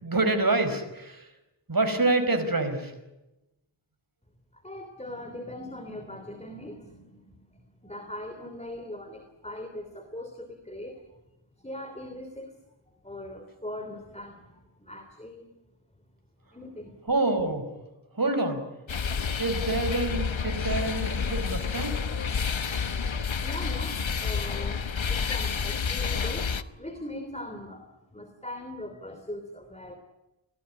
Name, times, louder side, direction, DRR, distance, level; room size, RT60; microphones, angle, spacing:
voice 1, 0.0-1.3 1.7-2.9 17.0-17.7 18.1-18.6 19.4-21.9, right 2 dB, 45° right, 7 dB, 4.9 m, -26 dB
voice 2, 4.5-11.2 11.6-12.5 13.0-15.6 16.5-17.0 23.4-30.0, left 1 dB, 15° left, 7 dB, 3.2 m, -41 dB
sound 1, 18.9-26.6, left 6 dB, 75° left, 1.2 m, -29 dB
27.0 x 19.0 x 9.9 m, 0.98 s
wide cardioid pair, 75°, 47 cm